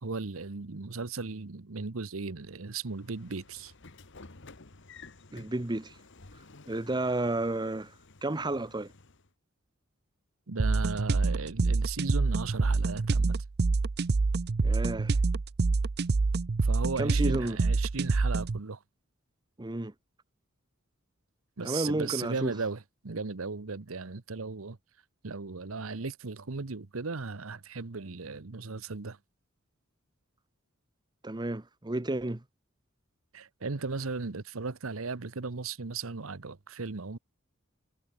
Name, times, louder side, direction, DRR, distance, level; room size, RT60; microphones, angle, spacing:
voice 1, 0.0-3.7 10.5-13.3 16.6-18.8 21.6-24.8 25.2-29.2 33.3-37.2, right 4 dB, 80° right, 1.0 m, -36 dB
Train / Sliding door, 2.7-9.3, left 3 dB, 60° left, 1.8 m, -53 dB
voice 2, 5.3-6.0 6.7-7.9 8.2-8.9 14.6-15.2 17.0-17.6 19.6-19.9 21.6-22.5 31.2-32.4, right 2 dB, 20° right, 0.9 m, -31 dB
sound 1, 10.6-18.6, right 3 dB, 50° right, 0.6 m, -26 dB
head